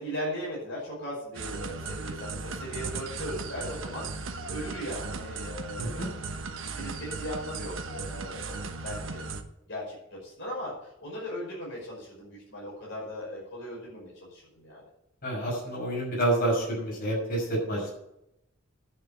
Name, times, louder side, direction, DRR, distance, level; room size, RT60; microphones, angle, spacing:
voice 1, 0.0-4.1 4.5-6.1 6.7-9.2 9.7-10.7 11.0-14.8, equal, 65° left, -4 dB, 5.5 m, -38 dB
sound 1, 1.3-9.4, right 3 dB, 75° right, 1.1 m, -37 dB
voice 2, 5.7-6.1 15.2-17.9, right 1 dB, 50° left, -3 dB, 6.0 m, -28 dB
10.5 x 6.4 x 8.6 m, 0.81 s
head